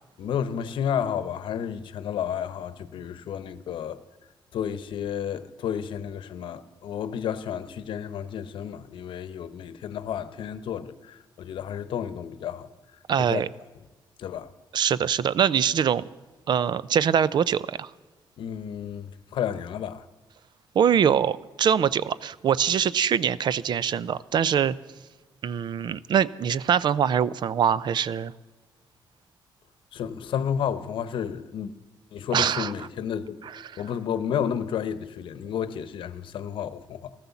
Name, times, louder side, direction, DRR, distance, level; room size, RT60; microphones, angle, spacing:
voice 1, 0.2-4.0 4.5-12.7 13.2-13.4 14.2-14.5 18.4-20.1 29.9-31.7 32.1-33.4 33.8-37.1, left 8 dB, 80° left, 0.8 m, -31 dB
voice 2, 13.1-13.5 14.7-16.0 16.5-17.9 20.7-24.7 25.4-28.3 32.3-32.7, right 8 dB, 60° right, 0.5 m, -23 dB
14.5 x 13.5 x 7.1 m
cardioid pair, 100°, 8 cm